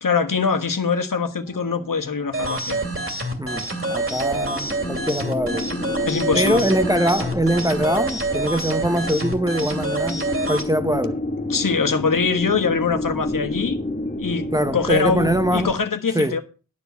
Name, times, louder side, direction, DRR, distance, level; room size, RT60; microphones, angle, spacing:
voice 1, 0.0-2.8 6.0-6.7 11.5-13.8 14.2-16.4, left 5 dB, 65° left, 1.3 m, -23 dB
sound 1, 1.4-15.7, left 2 dB, 25° left, 1.3 m, -31 dB
sound 2, 2.3-10.7, right 2 dB, 40° right, 2.6 m, -27 dB
voice 2, 3.4-5.7 6.4-10.2 10.5-11.2 14.5-15.7 16.1-16.4, equal, 10° right, 0.8 m, -22 dB
12.0 x 4.6 x 8.1 m
wide cardioid pair, 60°, 35 cm